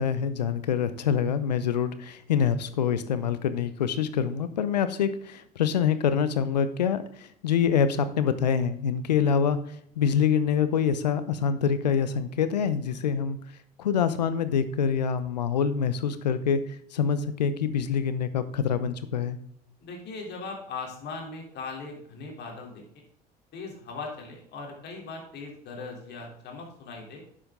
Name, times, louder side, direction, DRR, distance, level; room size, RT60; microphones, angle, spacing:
voice 1, 0.0-13.4 13.8-16.6 16.9-19.4, left 7 dB, 90° left, 13 dB, 0.7 m, -25 dB
voice 2, 19.8-22.8 23.5-27.2, left 4 dB, 55° left, 1 dB, 3.4 m, -39 dB
9.6 x 7.4 x 3.7 m, 0.68 s
hypercardioid pair, 65°, 21 cm